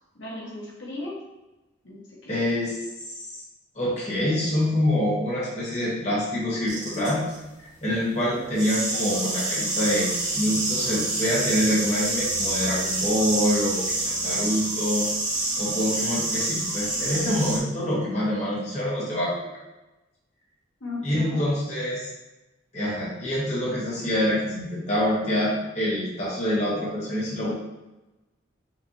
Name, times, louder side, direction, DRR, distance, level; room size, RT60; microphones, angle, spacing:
voice 1, 0.1-1.1 1.8-2.3 14.1-14.2 20.8-21.4, left 2 dB, 75° left, -5 dB, 1.2 m, -36 dB
voice 2, 2.3-2.7 3.0-3.4 3.7-7.2 7.8-15.1 15.6-19.3 21.0-22.1 22.7-27.5, equal, 35° left, -7 dB, 1.4 m, -26 dB
sound 1, 6.7-7.4 8.5-17.6, right 2 dB, 20° right, 1.2 m, -27 dB
5.9 x 3.3 x 2.7 m, 1.0 s
head